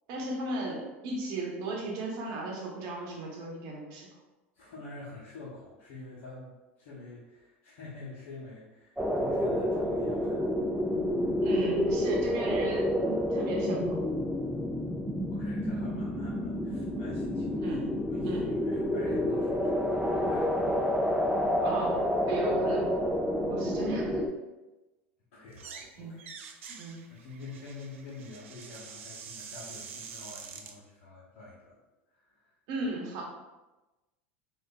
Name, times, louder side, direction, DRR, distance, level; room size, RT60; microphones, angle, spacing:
voice 1, 0.1-4.1 11.4-14.0 17.6-18.0 18.2-18.5 21.6-22.9 23.5-24.2 26.0-26.2 26.7-27.1 32.7-33.2, right 2 dB, 60° right, -2 dB, 0.9 m, -36 dB
voice 2, 4.6-6.5 6.8-10.4 15.3-20.6 21.3-21.4 25.3-26.3 27.1-31.7, left 3 dB, 65° left, -9 dB, 1.0 m, -46 dB
sound 1, 9.0-24.3, equal, 5° right, 0.4 m, -29 dB
sound 2, 25.5-25.9 26.2-30.8, right 6 dB, 80° right, 0.3 m, -46 dB
3.5 x 2.6 x 2.4 m, 1.1 s
hypercardioid pair, 90°, 7 cm